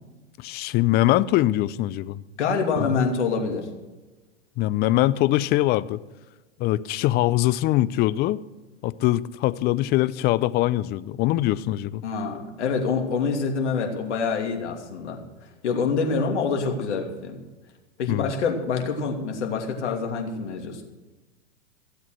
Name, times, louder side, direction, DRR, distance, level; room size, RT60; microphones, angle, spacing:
voice 1, 0.4-2.2 2.8-2.9 4.6-6.0 6.6-8.4 8.8-12.0 18.1-18.3, left 15 dB, 30° left, 17 dB, 0.4 m, -22 dB
voice 2, 2.4-3.7 12.0-17.4 18.0-20.8, left 5 dB, 70° left, 2 dB, 2.9 m, -26 dB
16.0 x 8.0 x 6.4 m, 1.2 s
hypercardioid pair, 105°, 36 cm